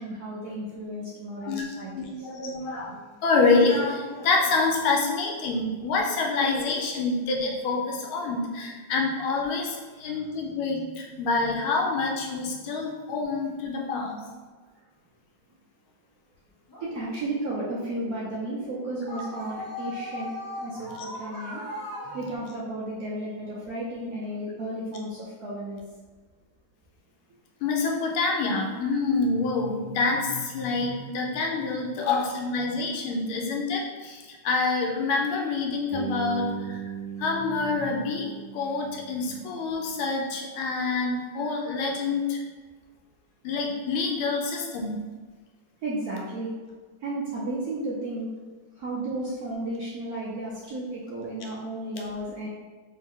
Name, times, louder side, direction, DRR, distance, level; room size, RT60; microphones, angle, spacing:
voice 1, 0.0-2.3 16.8-21.6 22.1-25.8 45.8-46.5 47.0-48.3 48.8-52.5, right 1 dB, 65° right, -6 dB, 0.9 m, -33 dB
voice 2, 1.9-3.0 3.2-14.2 27.6-36.9 37.2-42.4 43.4-45.0, left 3 dB, 85° left, 0 dB, 1.5 m, -27 dB
sound 1, 16.7-22.3, left 1 dB, 25° left, 0.4 m, -39 dB
Bass guitar, 35.9-39.9, right 6 dB, 35° right, 1.6 m, -38 dB
4.1 x 2.7 x 3.6 m, 1.4 s
omnidirectional pair, 2.3 m